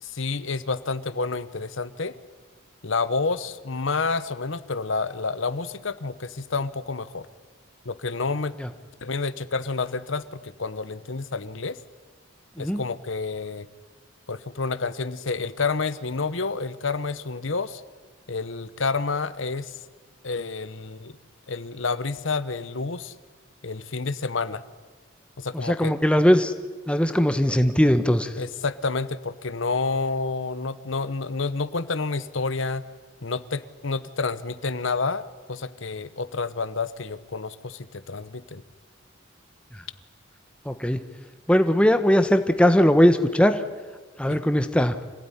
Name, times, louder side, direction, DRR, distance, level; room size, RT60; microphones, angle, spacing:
voice 1, 0.0-2.1 2.8-7.3 7.8-8.5 9.0-11.8 12.6-13.7 14.3-17.8 18.3-19.8 20.2-21.2 21.5-23.1 23.6-24.6 25.4-26.0 28.4-32.8 33.2-38.6 44.3-44.4, left 4 dB, 75° left, 15 dB, 1.0 m, -29 dB
voice 2, 25.5-26.5 26.9-28.3 40.6-41.0 41.5-43.6 44.2-45.0, equal, 5° left, 9 dB, 1.0 m, -19 dB
26.5 x 16.5 x 10.0 m, 1.4 s
head